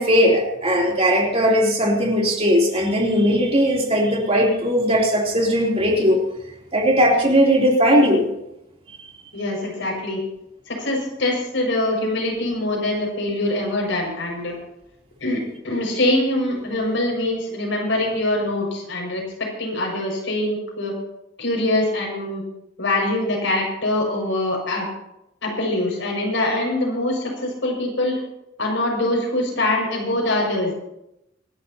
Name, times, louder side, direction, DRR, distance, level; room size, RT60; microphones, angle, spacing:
voice 1, 0.0-6.2 6.7-8.3, equal, 35° right, -1 dB, 3.3 m, -18 dB
voice 2, 9.3-10.2 10.7-14.5 15.2-20.9 21.4-22.4 22.8-24.9 25.4-28.2 28.6-30.8, left 1 dB, 85° left, 0 dB, 6.1 m, -23 dB
26.5 x 11.5 x 2.9 m, 0.86 s
head